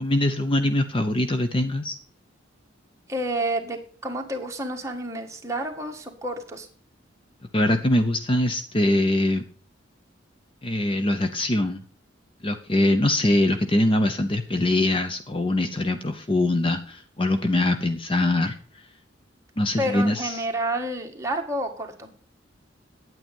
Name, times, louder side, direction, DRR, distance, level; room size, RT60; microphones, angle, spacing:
voice 1, 0.0-2.0 7.5-9.4 10.6-11.8 12.4-18.6 19.6-20.4, left 1 dB, 30° left, 8 dB, 0.7 m, -23 dB
voice 2, 3.1-6.7 19.8-22.1, right 1 dB, 15° right, 1 dB, 1.6 m, -29 dB
9.2 x 9.0 x 5.4 m, 0.41 s
head